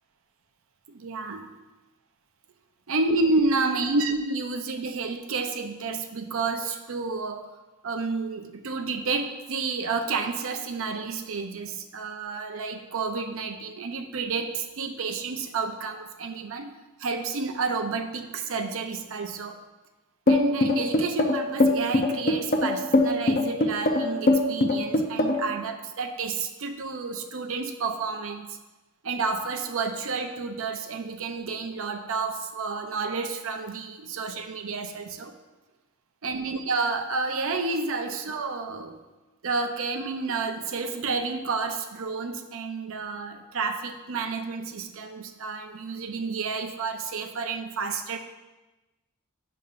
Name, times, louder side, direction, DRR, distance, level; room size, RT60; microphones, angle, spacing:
voice 1, 0.9-1.5 2.9-7.4 7.8-16.7 17.0-19.6 20.3-28.6 29.0-35.3 36.2-39.0 39.4-48.2, right 4 dB, 65° right, 6 dB, 0.6 m, -30 dB
sound 1, 20.3-25.5, left 2 dB, 40° left, 0.6 m, -21 dB
8.7 x 6.7 x 2.5 m, 1.1 s
head